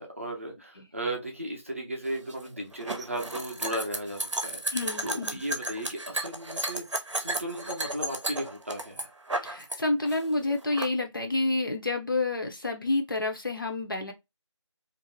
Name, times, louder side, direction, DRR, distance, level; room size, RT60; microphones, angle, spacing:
voice 1, 0.0-4.8 5.0-9.1, right 1 dB, 25° right, 0.5 m, -36 dB
sound 1, 2.1-9.8 10.0-10.9, right 1 dB, 75° right, 0.7 m, -33 dB
voice 2, 4.7-5.4 9.4-14.1, left 2 dB, 45° left, 0.6 m, -29 dB
2.5 x 2.0 x 3.1 m
figure-of-eight pair, 165°, 16 cm